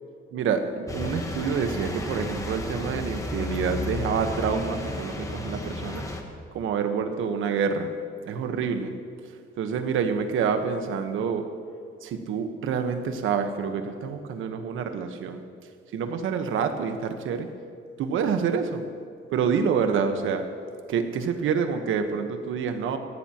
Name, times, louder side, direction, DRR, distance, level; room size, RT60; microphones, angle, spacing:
voice 1, 0.3-6.0 6.5-8.0 8.2-8.9 9.6-11.5 12.0-15.4 15.9-17.5 18.0-18.8 19.3-20.4 20.9-23.0, right 6 dB, 70° right, 7 dB, 1.2 m, -27 dB
sound 1, 0.9-6.2, left 2 dB, 15° left, 1.2 m, -33 dB
18.5 x 15.5 x 3.0 m, 2.4 s
cardioid pair, 155°, 21 cm